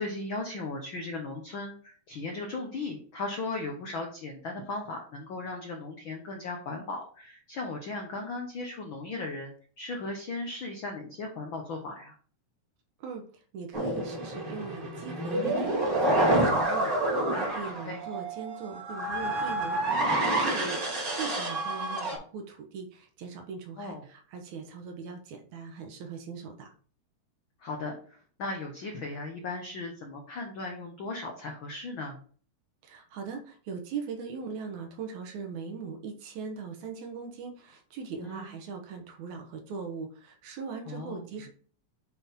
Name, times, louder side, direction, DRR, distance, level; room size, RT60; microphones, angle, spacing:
voice 1, 0.0-12.1 17.8-18.0 23.8-24.0 27.6-32.2 38.2-38.5 40.9-41.3, left 3 dB, 80° left, 2 dB, 1.1 m, -37 dB
voice 2, 13.5-26.7 32.8-41.5, right 5 dB, 70° right, 4 dB, 2.2 m, -40 dB
sound 1, 13.7-22.2, right 1 dB, 35° right, 1.8 m, -28 dB
7.7 x 4.3 x 3.6 m, 0.43 s
omnidirectional pair, 3.8 m